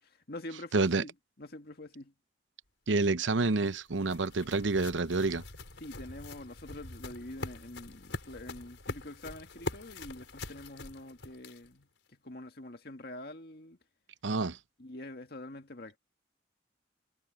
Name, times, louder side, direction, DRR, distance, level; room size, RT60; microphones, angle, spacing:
voice 1, 0.0-2.1 5.8-13.8 14.8-16.0, left 1 dB, 55° left, 2.0 m, -46 dB
voice 2, 0.7-1.0 2.9-5.4 14.2-14.6, right 3 dB, 90° right, 0.8 m, -28 dB
sound 1, 3.3-11.8, left 2 dB, 85° left, 4.7 m, -44 dB
head